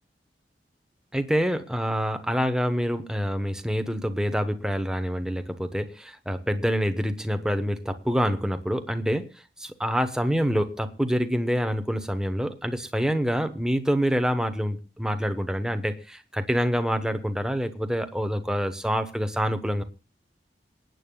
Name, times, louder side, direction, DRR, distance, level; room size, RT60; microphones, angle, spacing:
voice 1, 1.1-9.3 9.6-19.8, equal, 5° right, 1.0 m, -26 dB
27.5 x 9.3 x 2.3 m
head